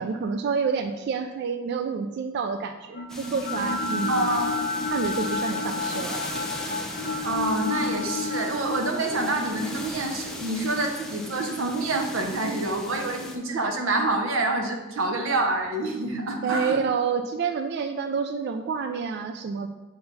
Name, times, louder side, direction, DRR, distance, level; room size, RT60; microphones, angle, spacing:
voice 1, 0.0-4.3 4.9-6.2 16.4-19.7, right 5 dB, 55° right, 8 dB, 0.3 m, -28 dB
sound 1, 2.9-13.1, left 3 dB, 45° left, 0.6 m, -32 dB
sound 2, 3.1-13.4, left 1 dB, 5° left, 0.6 m, -38 dB
voice 2, 4.1-4.5 7.2-16.8, right 2 dB, 75° right, 4 dB, 0.9 m, -27 dB
6.7 x 3.9 x 3.9 m, 1.2 s
head